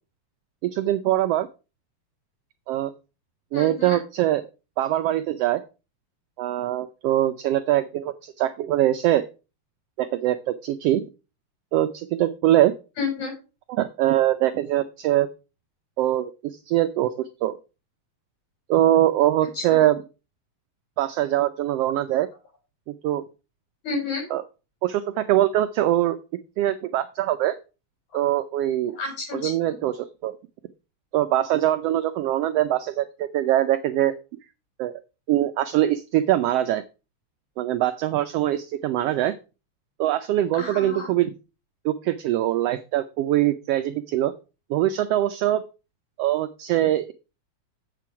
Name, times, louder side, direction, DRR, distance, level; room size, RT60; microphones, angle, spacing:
voice 1, 0.6-1.5 2.7-2.9 3.5-4.4 4.8-5.6 6.4-9.2 10.0-11.0 11.7-12.7 13.7-15.3 16.0-17.1 17.4-17.5 18.7-19.9 21.0-22.3 22.9-23.2 24.3-24.4 24.8-26.2 26.6-27.6 28.1-28.9 29.3-30.3 31.1-34.1 34.8-34.9 35.3-36.8 37.6-39.3 40.0-41.3 41.8-44.3 44.7-45.6 46.2-47.1, right 13 dB, 85° right, 10 dB, 1.3 m, -22 dB
voice 2, 3.5-4.0 13.0-13.3 19.6-19.9 23.8-24.2 28.9-29.8 40.6-41.1, left 4 dB, 80° left, 0 dB, 5.7 m, -31 dB
7.6 x 7.5 x 4.6 m, 0.31 s
omnidirectional pair, 3.3 m